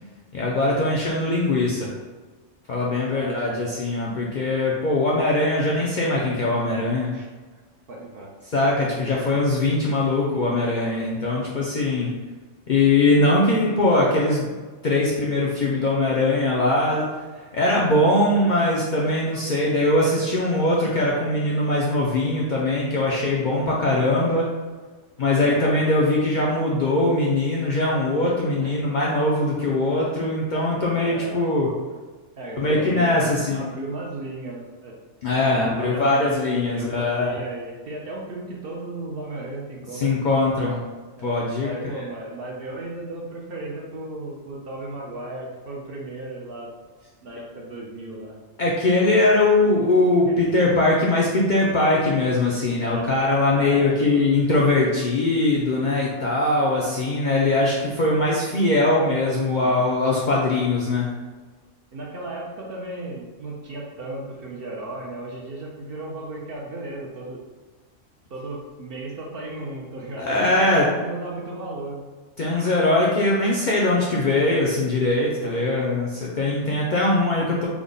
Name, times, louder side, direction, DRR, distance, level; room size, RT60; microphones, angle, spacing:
voice 1, 0.3-1.9 2.7-7.1 8.5-12.1 12.7-14.5 14.8-17.1 17.3-24.5 25.2-31.7 32.6-33.6 35.2-37.4 39.9-40.8 41.2-41.7 42.0-42.1 48.6-61.1 70.2-70.9 72.4-77.7, left 2 dB, 60° left, -4 dB, 0.5 m, -21 dB
voice 2, 3.1-3.4 7.1-7.3 7.9-8.3 9.0-9.2 25.4-25.8 28.6-28.8 31.1-31.4 32.4-35.0 35.3-40.1 41.2-46.7 47.2-48.4 50.3-50.4 52.8-53.1 53.5-54.3 59.6-59.8 61.9-67.4 68.3-72.0 75.4-75.6, right 2 dB, 60° right, -2 dB, 0.7 m, -35 dB
3.5 x 2.1 x 3.7 m, 1.3 s
omnidirectional pair, 1.2 m